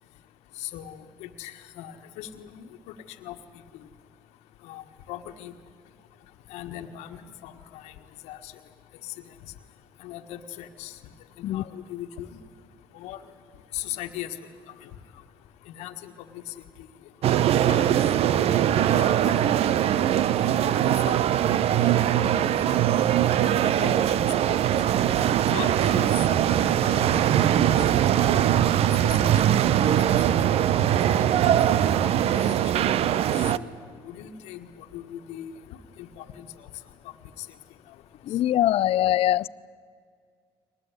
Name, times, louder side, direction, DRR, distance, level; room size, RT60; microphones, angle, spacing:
voice 1, 0.6-2.7 3.2-3.4 4.6-5.5 6.5-7.9 8.2-8.5 9.0-9.1 10.0-11.0 11.4-12.4 12.9-13.2 13.7-14.3 14.8-14.9 15.7-16.5 17.6-17.9 18.9-19.7 20.0-20.1 20.9-21.2 21.8-22.5 22.9-23.1 23.8-24.8 25.5-26.1 26.4-27.8 28.4-29.4 29.8-30.0 31.1-31.5 31.8-32.5 33.4-33.7 34.0-35.5 36.0-36.7 37.4-37.5, left 12 dB, 80° left, 1.5 m, -40 dB
sound 1, 17.2-33.6, right 11 dB, 65° right, 0.8 m, -21 dB
voice 2, 38.3-39.5, left 13 dB, 60° left, 0.6 m, -22 dB
23.5 x 19.5 x 9.7 m
supercardioid pair, 75°, 11 cm